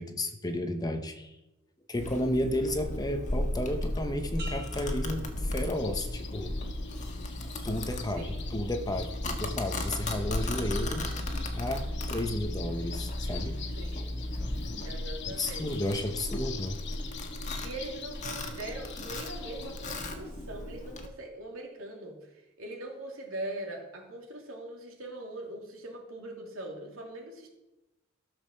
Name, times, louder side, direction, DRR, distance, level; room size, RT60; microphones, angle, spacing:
voice 1, 0.0-1.3 1.9-6.6 7.6-11.1 11.5-13.9 14.4-16.8, left 1 dB, 20° left, 6 dB, 1.0 m, -33 dB
Domestic sounds home sounds, 2.0-21.1, left 1 dB, 35° left, 1.5 m, -35 dB
sound 1, 4.4-6.2 6.7-7.1, right 1 dB, 55° right, 4.1 m, -48 dB
sound 2, 5.7-20.1, left 8 dB, 55° left, 1.0 m, -46 dB
voice 2, 13.8-14.1 14.8-15.8 17.6-27.5, right 1 dB, 75° right, 1 dB, 3.0 m, -41 dB
14.0 x 6.6 x 6.6 m, 0.97 s
head